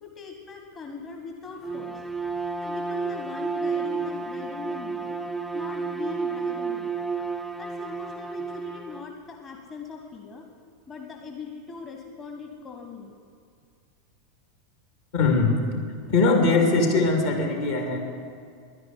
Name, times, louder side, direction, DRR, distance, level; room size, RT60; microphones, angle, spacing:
voice 1, 0.0-2.0 2.6-5.2 5.5-6.9 7.6-10.5 10.9-13.1, left 5 dB, 25° left, 2 dB, 1.3 m, -40 dB
Bowed string instrument, 1.6-9.1, right 4 dB, ahead, 0.6 m, -31 dB
voice 2, 15.1-15.5 16.1-18.0, left 3 dB, 60° left, 2 dB, 2.4 m, -21 dB
11.0 x 9.7 x 9.5 m, 2.2 s
figure-of-eight pair, 85°, 0 cm